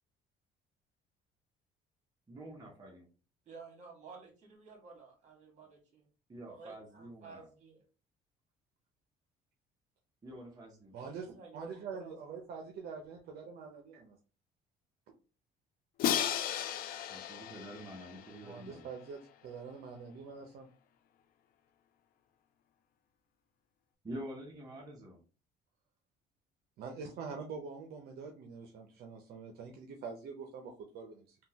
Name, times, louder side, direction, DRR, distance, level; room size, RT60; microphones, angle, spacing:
voice 1, 2.3-3.1 6.3-7.5 10.2-10.9 17.1-18.9 24.0-25.2, right 1 dB, 20° right, -1 dB, 0.7 m, -47 dB
voice 2, 3.4-6.0 6.5-7.8 11.0-12.4, right 4 dB, 45° right, 0 dB, 1.7 m, -53 dB
voice 3, 10.9-14.2 18.4-20.7 26.8-31.4, right 5 dB, 70° right, 2 dB, 0.6 m, -45 dB
Crash cymbal, 16.0-19.0, left 10 dB, 60° left, 0.4 m, -35 dB
3.6 x 2.2 x 2.8 m, 0.36 s
cardioid pair, 110°, 17 cm